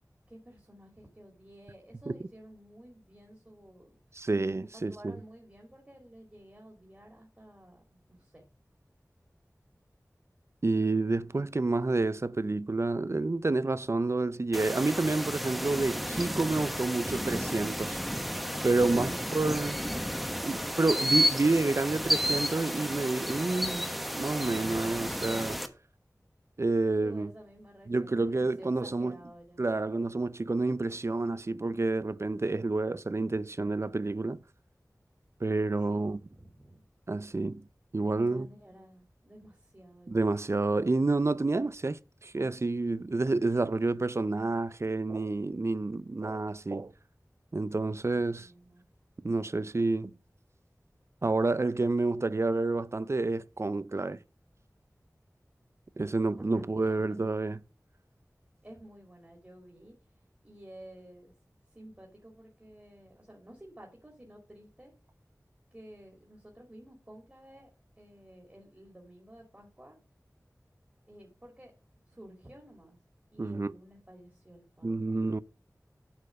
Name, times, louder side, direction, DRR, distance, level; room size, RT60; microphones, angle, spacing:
voice 1, 0.3-3.9 4.6-8.5 27.0-29.7 35.7-36.8 38.1-40.3 48.1-48.8 56.0-57.2 58.6-59.9 60.4-61.3 61.7-64.9 65.7-67.7 68.0-70.0 71.1-71.7 72.1-73.0 73.3-75.3, right 1 dB, 25° right, 2.7 m, -52 dB
voice 2, 4.2-5.2 10.6-18.0 18.6-19.8 20.4-23.9 24.1-25.6 26.6-27.3 27.9-29.2 29.6-34.4 35.4-36.2 37.1-37.6 37.9-38.5 40.1-46.9 47.5-48.5 49.2-50.1 51.2-54.2 56.0-57.6 73.4-73.7 74.8-75.4, right 3 dB, 50° right, 0.5 m, -29 dB
sound 1, 14.5-25.7, equal, ahead, 1.2 m, -32 dB
8.1 x 5.4 x 6.3 m
wide cardioid pair, 60°, 6 cm